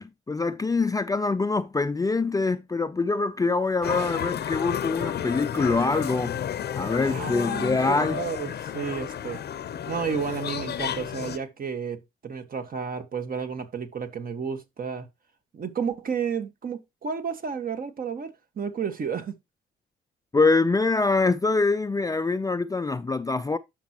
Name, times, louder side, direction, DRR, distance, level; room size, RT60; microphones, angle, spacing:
voice 1, 0.0-6.4 6.7-8.2 20.3-23.6, left 3 dB, 20° left, 0.5 m, -24 dB
sound 1, 3.8-11.4, left 9 dB, 55° left, 0.8 m, -31 dB
voice 2, 7.0-9.4 9.9-15.1 15.5-19.3, right 6 dB, 45° right, 1.6 m, -32 dB
11.0 x 6.0 x 3.0 m
cardioid pair, 90°, 20 cm